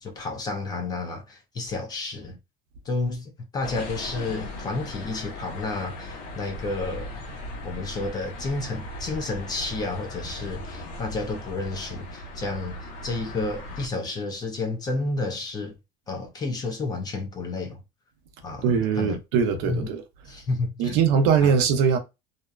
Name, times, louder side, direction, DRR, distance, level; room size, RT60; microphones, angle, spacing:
voice 1, 0.0-2.4 2.8-7.1 7.6-15.8 16.1-17.8 18.4-19.2 19.7-19.9 20.3-21.0 21.4-21.5, left 3 dB, 20° left, 0.4 m, -31 dB
sound 1, 3.6-13.9, left 1 dB, 80° left, 1.0 m, -38 dB
voice 2, 18.6-20.0 20.8-22.0, right 6 dB, 60° right, 0.7 m, -21 dB
2.7 x 2.2 x 2.3 m
cardioid pair, 170°, 20 cm